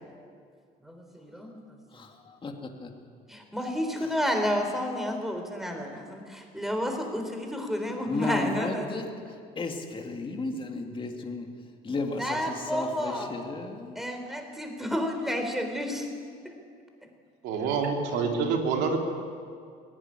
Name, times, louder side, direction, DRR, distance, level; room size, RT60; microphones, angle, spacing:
voice 1, 0.8-2.0 3.3-9.0 12.2-13.3 14.0-16.1, equal, ahead, 4 dB, 3.9 m, -31 dB
voice 2, 1.9-2.9 4.0-4.1 8.1-11.5 11.8-14.0, left 3 dB, 30° left, 3 dB, 2.5 m, -34 dB
voice 3, 17.4-19.0, right 5 dB, 90° right, 2 dB, 3.1 m, -27 dB
19.0 x 16.5 x 9.9 m, 2.2 s
cardioid pair, 110°, 17 cm